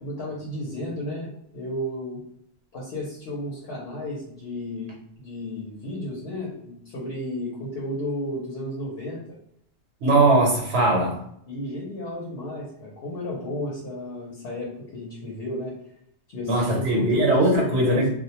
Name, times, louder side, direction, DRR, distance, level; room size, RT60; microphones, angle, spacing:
voice 1, 0.0-2.2 2.7-9.2 11.5-15.7 16.3-18.1, left 1 dB, 70° left, -3 dB, 0.9 m, -33 dB
voice 2, 10.0-11.2 16.4-18.1, right 1 dB, 90° right, -2 dB, 1.0 m, -20 dB
2.2 x 2.1 x 2.8 m, 0.71 s
omnidirectional pair, 1.1 m